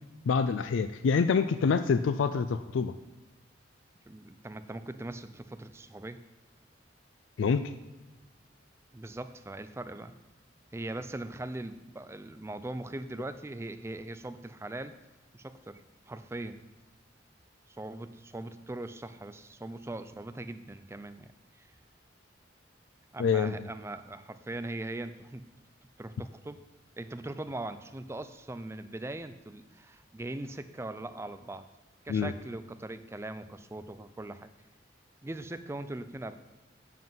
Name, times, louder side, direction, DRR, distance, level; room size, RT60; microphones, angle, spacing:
voice 1, 0.3-2.9 7.4-7.7 23.2-23.7 32.1-32.3, left 5 dB, 75° left, 11 dB, 0.4 m, -26 dB
voice 2, 4.1-6.2 8.9-10.1 10.7-14.9 15.3-16.6 17.7-21.7 23.1-25.5 26.0-26.7 27.0-31.7 32.0-34.5 35.2-36.4, right 2 dB, 15° right, 10 dB, 0.4 m, -40 dB
7.6 x 7.5 x 5.6 m, 1.1 s
head